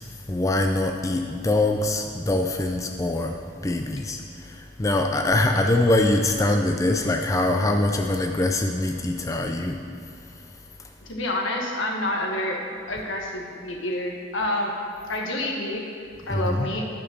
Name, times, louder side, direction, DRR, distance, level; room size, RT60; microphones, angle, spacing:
voice 1, 0.3-3.3 3.6-9.8 16.3-16.7, left 2 dB, 15° left, 3 dB, 0.3 m, -23 dB
voice 2, 11.0-12.6 12.9-14.7 15.1-15.8 16.3-16.8, left 1 dB, 85° left, 0 dB, 1.4 m, -28 dB
9.8 x 5.3 x 6.6 m, 2.6 s
head